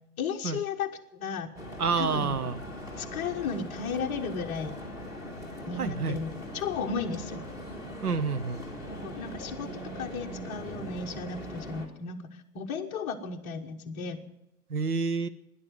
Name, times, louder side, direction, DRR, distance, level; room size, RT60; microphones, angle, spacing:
voice 1, 0.2-1.5 2.0-2.3 3.0-4.7 5.7-6.3 6.5-7.5 8.9-12.2 12.5-14.2, left 5 dB, 15° left, 0 dB, 0.9 m, -34 dB
sound 1, 1.5-11.9, equal, 5° right, 1.5 m, -41 dB
voice 2, 1.8-2.6 5.8-6.2 8.0-8.6 14.7-15.3, right 5 dB, 75° right, 12 dB, 0.9 m, -28 dB
12.5 x 10.5 x 9.3 m, 0.89 s
figure-of-eight pair, 125°, 46 cm